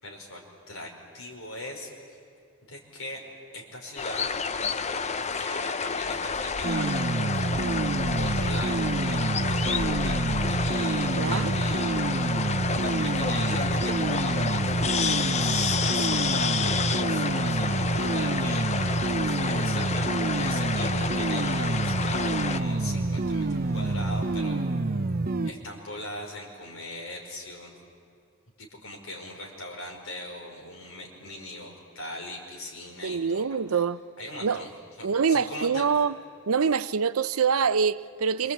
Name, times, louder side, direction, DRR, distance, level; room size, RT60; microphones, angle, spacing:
voice 1, 0.0-1.9 2.7-3.2 3.5-4.3 5.3-7.0 7.3-7.7 8.1-12.0 12.7-14.8 15.4-24.6 25.5-27.7 28.6-33.4 33.7-33.8 34.2-34.7 35.0-35.9, left 1 dB, 70° left, 5.3 m, -40 dB
sound 1, 4.0-22.6, left 5 dB, 30° left, 0.7 m, -30 dB
sound 2, 6.6-25.5, right 2 dB, 45° right, 0.8 m, -28 dB
sound 3, 7.6-24.3, right 2 dB, 15° left, 6.1 m, -41 dB
voice 2, 11.1-11.5 33.0-34.0 34.4-34.6 35.0-36.2 36.5-38.5, right 6 dB, 85° right, 0.6 m, -25 dB
27.0 x 24.5 x 8.6 m
head